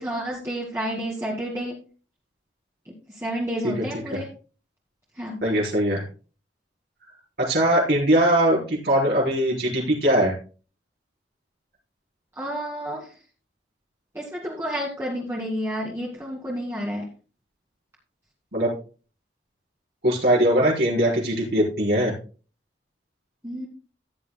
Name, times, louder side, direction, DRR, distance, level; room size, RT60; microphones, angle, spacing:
voice 1, 0.0-1.8 3.2-4.3 5.2-5.4 12.4-13.1 14.1-17.1 23.4-23.7, equal, 15° right, -4 dB, 2.2 m, -30 dB
voice 2, 5.4-6.0 7.4-10.4 18.5-18.7 20.0-22.1, right 1 dB, 60° right, -4 dB, 4.4 m, -21 dB
15.0 x 9.7 x 2.2 m, 0.36 s
head